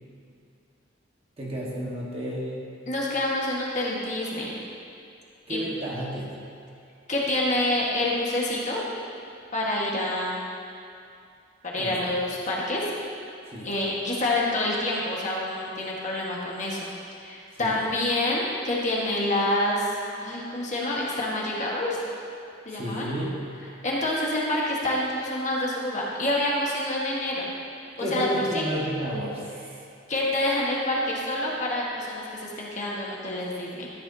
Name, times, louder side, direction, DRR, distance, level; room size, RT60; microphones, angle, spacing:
voice 1, 1.4-2.7 5.5-6.3 11.8-12.2 13.5-13.7 17.6-17.8 22.7-23.4 28.0-29.4, equal, 30° right, -5 dB, 1.4 m, -31 dB
voice 2, 2.9-4.6 5.5-5.6 7.1-8.8 9.5-10.5 11.6-12.8 13.6-16.9 17.2-19.9 20.2-22.0 22.6-23.1 23.8-27.5 28.0-28.3 28.5-28.7 30.1-33.9, left 1 dB, 40° left, -4 dB, 1.4 m, -27 dB
13.0 x 8.0 x 2.7 m, 2.5 s
head